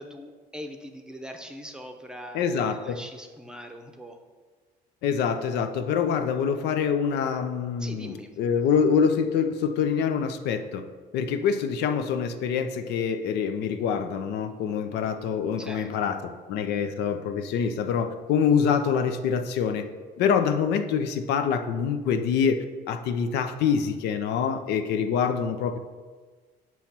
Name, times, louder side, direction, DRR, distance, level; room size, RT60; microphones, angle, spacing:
voice 1, 0.0-4.2 7.8-8.4 15.6-15.9, equal, 5° right, 4 dB, 0.6 m, -41 dB
voice 2, 2.3-3.0 5.0-10.8 11.1-19.8 20.2-25.8, left 6 dB, 80° left, 8 dB, 0.5 m, -25 dB
6.9 x 3.0 x 5.9 m, 1.4 s
cardioid pair, 110°, 17 cm